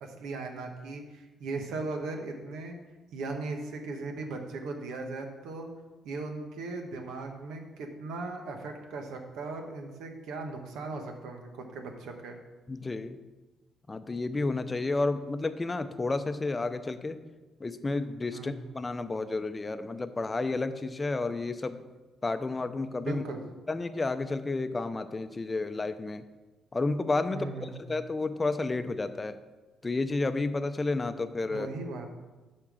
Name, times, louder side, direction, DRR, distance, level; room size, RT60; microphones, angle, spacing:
voice 1, 0.0-2.8 3.1-5.7 6.0-12.4 18.3-18.5 23.0-23.4 27.3-27.9 31.5-32.1, right 3 dB, 85° right, 4 dB, 1.2 m, -38 dB
voice 2, 12.7-13.2 13.9-17.2 17.6-21.8 22.2-23.2 23.7-26.2 26.7-29.4 29.8-31.7, left 3 dB, 25° left, 11 dB, 0.6 m, -31 dB
8.8 x 4.4 x 6.3 m, 1.2 s
cardioid pair, 90°, 0 cm